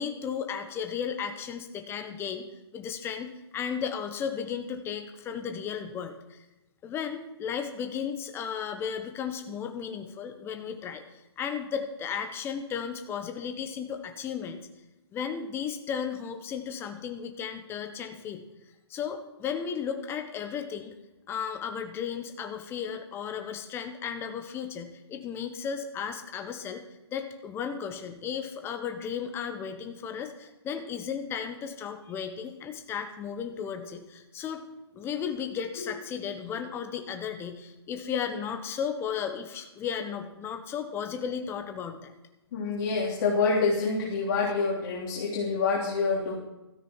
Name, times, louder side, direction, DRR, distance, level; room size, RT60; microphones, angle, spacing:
voice 1, 0.0-2.5 2.7-6.4 6.8-14.7 15.1-18.4 18.9-20.9 21.3-26.8 27.1-34.6 34.9-42.1, left 7 dB, 15° left, 6 dB, 1.1 m, -34 dB
voice 2, 42.5-46.3, left 4 dB, 45° left, -4 dB, 3.2 m, -27 dB
16.0 x 13.5 x 4.5 m, 1.0 s
figure-of-eight pair, 135°, 14 cm